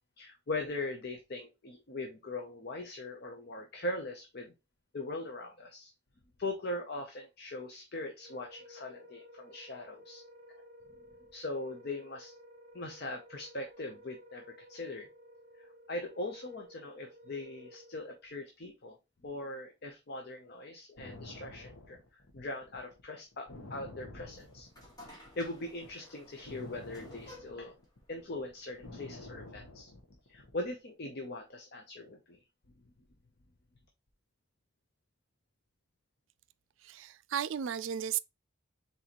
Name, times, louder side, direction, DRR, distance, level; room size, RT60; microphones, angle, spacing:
voice 1, 0.2-4.5 4.9-5.9 6.4-10.2 11.3-12.3 12.7-15.1 15.6-19.0 19.2-24.7 25.0-27.8 28.1-29.9 30.3-32.4, left 2 dB, 55° left, 0.7 m, -41 dB
Wind instrument woodwind instrument, 8.2-18.3, equal, 45° right, 0.8 m, -55 dB
sound 1, 21.0-25.3 25.6-30.6, left 2 dB, 85° left, 1.1 m, -49 dB
sound 2, 24.3-29.5, left 1 dB, 20° left, 1.7 m, -56 dB
voice 2, 36.8-38.2, right 9 dB, 70° right, 0.3 m, -34 dB
4.0 x 4.0 x 2.9 m
head